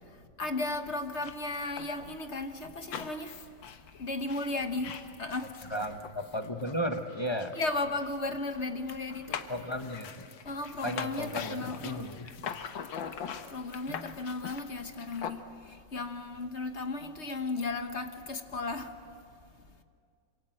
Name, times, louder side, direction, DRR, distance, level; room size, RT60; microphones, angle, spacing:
voice 1, 0.4-3.4 4.0-5.5 7.5-9.5 10.3-12.1 13.5-15.4 15.7-18.9, left 2 dB, 40° left, 1.4 m, -35 dB
sound 1, 1.0-8.6 8.9-15.3, left 7 dB, 85° left, 1.9 m, -44 dB
voice 2, 5.7-7.6 9.5-10.3 10.8-12.4 13.9-14.1, equal, 20° left, 0.8 m, -35 dB
sound 2, 9.3-9.5 11.0-11.1 12.5-12.6 13.9-14.1, left 8 dB, 70° left, 1.7 m, -36 dB
27.5 x 26.0 x 7.7 m
omnidirectional pair, 2.0 m